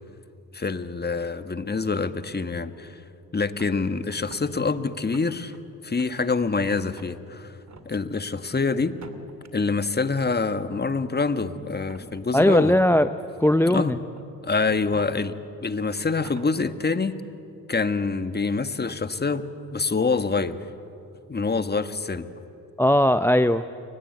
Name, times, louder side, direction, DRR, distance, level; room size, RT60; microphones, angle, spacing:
voice 1, 0.5-3.0 3.3-5.5 5.8-7.5 7.8-8.9 9.5-12.7 13.7-13.9 14.4-15.3 15.6-17.1 17.7-19.5 19.7-20.6 21.3-22.3, left 4 dB, 20° left, 11 dB, 1.6 m, -26 dB
sound 1, 3.6-4.5 4.9-5.6 6.0-6.6 6.9-7.1 7.6-7.9 8.8-9.5 10.5-10.6 11.7-12.7 13.1-13.2 13.9-14.2 14.7-15.1 15.6-15.7 16.0-16.5, right 5 dB, 35° right, 2.6 m, -46 dB
voice 2, 12.3-13.1 13.4-14.0 22.8-23.6, left 1 dB, 5° left, 12 dB, 0.6 m, -18 dB
30.0 x 24.0 x 8.1 m, 2.7 s
hypercardioid pair, 50°, 48 cm